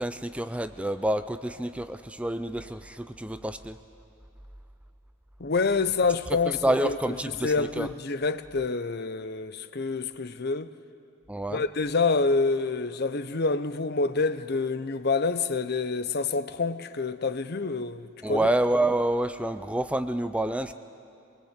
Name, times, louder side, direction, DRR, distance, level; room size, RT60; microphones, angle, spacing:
voice 1, 0.0-3.8 6.5-7.9 11.3-11.6 18.2-20.7, right 1 dB, 5° right, 0.4 m, -28 dB
voice 2, 5.4-7.0 7.2-10.7 11.5-18.5, left 4 dB, 50° left, 0.8 m, -27 dB
23.5 x 21.0 x 8.1 m
head